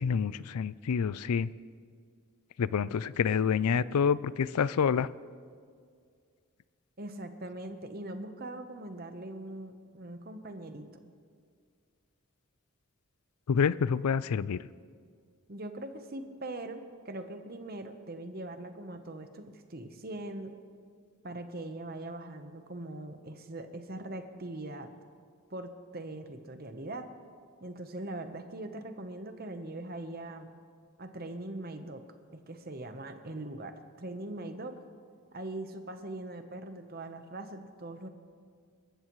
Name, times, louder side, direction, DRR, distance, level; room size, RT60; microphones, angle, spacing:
voice 1, 0.0-1.5 2.6-5.1 13.5-14.7, left 6 dB, 90° left, 18 dB, 0.4 m, -28 dB
voice 2, 7.0-11.0 15.5-20.5 21.2-24.9 25.5-27.1 27.6-30.6 31.0-32.0 32.5-34.7 35.3-38.1, right 1 dB, 40° right, 7 dB, 1.0 m, -41 dB
27.0 x 14.0 x 3.1 m, 2.1 s
head